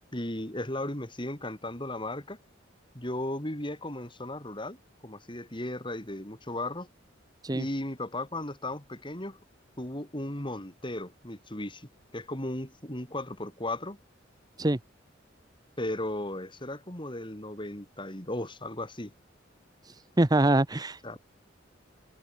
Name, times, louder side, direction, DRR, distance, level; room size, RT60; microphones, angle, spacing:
voice 1, 0.1-2.4 2.9-4.8 5.0-6.9 7.5-9.4 9.8-14.0 15.8-19.1 21.0-21.2, left 1 dB, 25° left, 4.3 m, -36 dB
voice 2, 19.8-21.2, right 1 dB, 20° right, 0.8 m, -25 dB
head